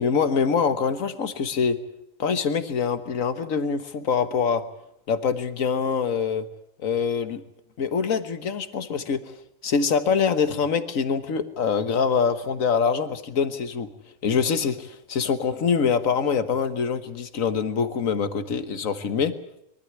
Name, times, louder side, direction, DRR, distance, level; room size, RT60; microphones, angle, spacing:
voice 1, 0.0-1.8 2.2-4.6 5.1-6.4 6.8-7.4 7.8-9.3 9.6-13.9 14.2-19.3, left 6 dB, 90° left, 10 dB, 1.7 m, -24 dB
23.5 x 13.0 x 9.7 m, 0.81 s
omnidirectional pair, 1.3 m